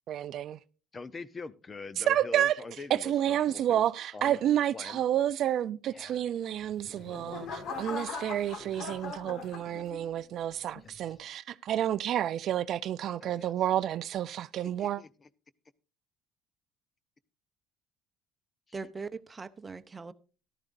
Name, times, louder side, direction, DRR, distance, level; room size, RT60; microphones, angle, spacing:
voice 1, 0.1-0.6 2.0-2.6 2.9-15.0, right 11 dB, 60° right, 0.4 m, -30 dB
voice 2, 0.9-3.8 4.1-5.0 5.9-6.2 7.0-7.1 8.6-9.2 10.8-11.2 13.2-13.5 14.8-15.3, left 4 dB, 30° left, 0.7 m, -45 dB
sound 1, 6.6-10.2 10.7-11.1, left 4 dB, 65° left, 1.9 m, -40 dB
voice 3, 18.7-20.1, right 4 dB, 25° right, 0.8 m, -40 dB
14.0 x 12.0 x 2.6 m
supercardioid pair, 85°, 0 cm